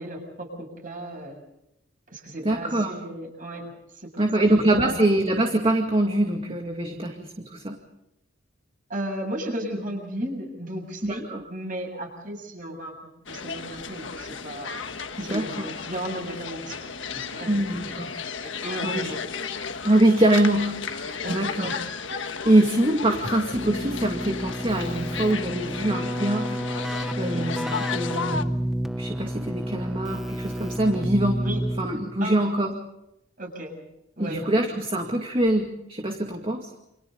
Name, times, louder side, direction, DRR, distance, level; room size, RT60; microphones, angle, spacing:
voice 1, 0.0-1.4 2.1-3.6 3.9-5.0 8.9-12.9 13.3-14.8 15.2-17.5 18.4-19.2 21.2-21.7 27.3-27.4 31.4-31.6 32.2-32.4 33.4-33.8 34.2-34.4, right 1 dB, 45° right, 3 dB, 7.4 m, -35 dB
voice 2, 2.4-2.9 4.2-7.8 11.0-11.4 15.2-15.7 17.5-18.1 18.4-18.5 18.8-19.1 19.8-21.7 22.4-26.5 27.2-28.6 29.0-31.4 31.8-32.7 34.2-36.7, right 1 dB, 30° right, 3 dB, 2.3 m, -24 dB
sound 1, 13.3-28.4, left 5 dB, 70° left, 1.5 m, -34 dB
Keyboard (musical), 23.5-32.2, equal, ahead, 0.8 m, -30 dB
29.5 x 27.0 x 4.0 m, 0.83 s
head